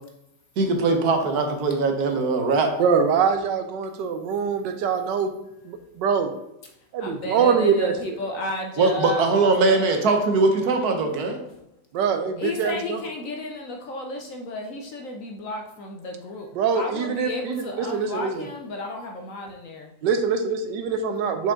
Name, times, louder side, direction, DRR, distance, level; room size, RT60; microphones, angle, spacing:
voice 1, 0.6-2.7 8.8-11.4, right 3 dB, 65° right, 1.3 m, -21 dB
voice 2, 2.8-5.3 5.6-6.3 6.9-8.2 11.9-13.0 16.5-18.5 20.0-21.5, right 6 dB, 85° right, 1.4 m, -24 dB
voice 3, 7.0-10.0 12.4-16.5 16.7-19.9, left 2 dB, 60° left, 0.9 m, -33 dB
5.4 x 4.9 x 3.6 m
omnidirectional pair, 1.9 m